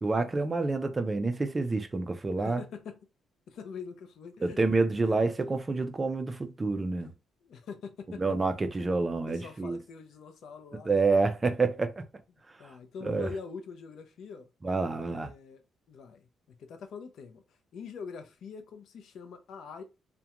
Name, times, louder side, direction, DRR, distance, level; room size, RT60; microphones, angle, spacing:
voice 1, 0.0-2.6 4.4-7.1 8.2-9.8 10.9-12.0 12.6-12.8 13.0-13.3 14.6-15.3, right 3 dB, 20° right, 0.3 m, -28 dB
voice 2, 2.4-3.0 3.5-4.6 5.1-5.2 7.0-7.1 7.4-8.2 8.8-8.9 9.3-11.0 12.6-14.5 15.1-15.6 15.9-19.8, left 5 dB, 65° left, 0.4 m, -44 dB
2.3 x 2.1 x 2.9 m
cardioid pair, 135°, 0 cm